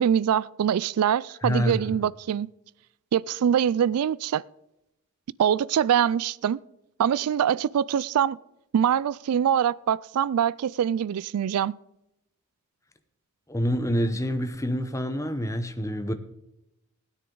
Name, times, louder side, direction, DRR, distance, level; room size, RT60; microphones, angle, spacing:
voice 1, 0.0-2.5 3.1-4.4 5.4-6.6 7.0-8.4 8.7-11.8, right 9 dB, 85° right, 0.3 m, -24 dB
voice 2, 1.4-2.0 13.5-16.1, equal, 15° left, 0.8 m, -27 dB
16.0 x 9.9 x 3.9 m
head